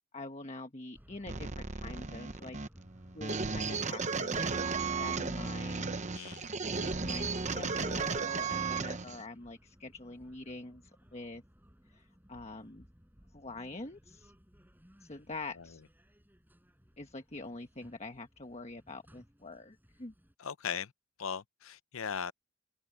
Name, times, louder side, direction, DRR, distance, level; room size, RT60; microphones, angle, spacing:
voice 1, 0.1-2.6 3.1-6.0 6.7-10.8 11.1-11.4 11.9-12.8 13.3-14.3 15.0-15.8 17.0-20.1, left 2 dB, 30° left, 1.3 m, -45 dB
sound 1, 0.9-20.3, equal, 10° right, 5.5 m, -61 dB
sound 2, 1.3-9.2, right 4 dB, 35° right, 0.9 m, -35 dB
voice 2, 6.1-6.5 15.6-15.7 20.4-20.9 21.2-22.3, left 7 dB, 75° left, 0.7 m, -38 dB
head